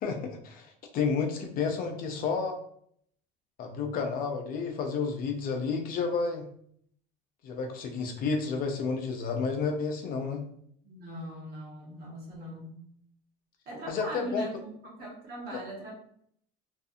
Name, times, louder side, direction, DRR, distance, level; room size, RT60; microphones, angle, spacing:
voice 1, 0.0-0.7 0.9-2.6 3.6-6.4 7.4-10.4 13.9-14.5 15.5-15.6, left 5 dB, 50° left, 3 dB, 0.5 m, -31 dB
voice 2, 1.4-2.4 10.8-12.8 13.7-15.9, right 1 dB, 55° right, -3 dB, 1.2 m, -41 dB
2.5 x 2.4 x 2.6 m, 0.65 s
cardioid pair, 120°, 19 cm